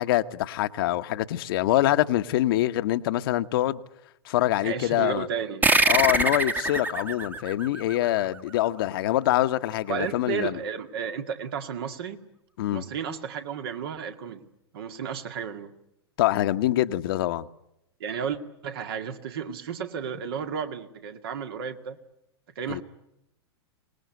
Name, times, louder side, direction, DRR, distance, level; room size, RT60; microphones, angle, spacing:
voice 1, 0.0-3.8 4.2-5.3 5.9-10.6 12.6-12.8 16.2-17.5 22.7-22.8, left 14 dB, 60° left, 1.0 m, -25 dB
voice 2, 4.6-5.7 9.9-12.2 12.7-14.5 14.7-15.7 18.0-22.0 22.6-22.8, right 7 dB, 65° right, 2.0 m, -33 dB
sound 1, 5.6-8.7, right 2 dB, 10° right, 1.2 m, -24 dB
24.5 x 19.5 x 9.4 m
hypercardioid pair, 105°, 14 cm